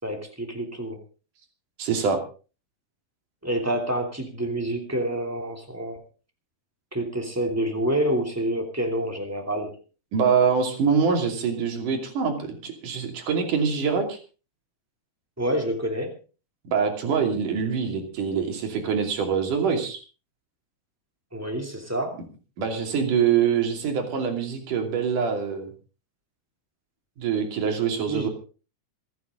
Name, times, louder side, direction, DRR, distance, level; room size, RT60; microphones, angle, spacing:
voice 1, 0.0-1.0 3.4-6.0 6.9-9.8 15.4-16.1 21.3-22.2 28.1-28.3, right 1 dB, 5° right, 3 dB, 2.4 m, -27 dB
voice 2, 1.8-2.2 10.1-14.2 16.6-20.0 22.6-25.7 27.2-28.3, right 6 dB, 65° right, 4 dB, 4.2 m, -24 dB
27.0 x 9.2 x 3.8 m, 0.36 s
omnidirectional pair, 4.0 m